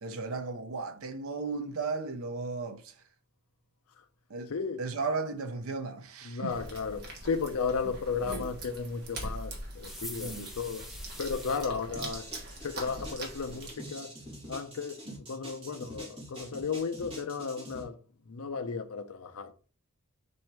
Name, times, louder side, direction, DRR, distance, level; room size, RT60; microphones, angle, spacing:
voice 1, 0.0-2.9 4.3-4.5 4.8-6.6 10.2-10.5 15.1-15.2, right 4 dB, 65° right, 0.7 m, -35 dB
voice 2, 4.5-4.8 6.2-10.9 11.2-12.3 12.6-14.2 14.5-15.0 15.3-17.9 18.3-19.5, left 5 dB, 75° left, 0.5 m, -34 dB
sound 1, 6.5-13.7, right 1 dB, 45° right, 1.2 m, -42 dB
sound 2, 9.8-11.7, equal, ahead, 0.6 m, -44 dB
sound 3, 12.0-17.8, equal, 25° right, 1.7 m, -45 dB
4.3 x 2.7 x 4.6 m
head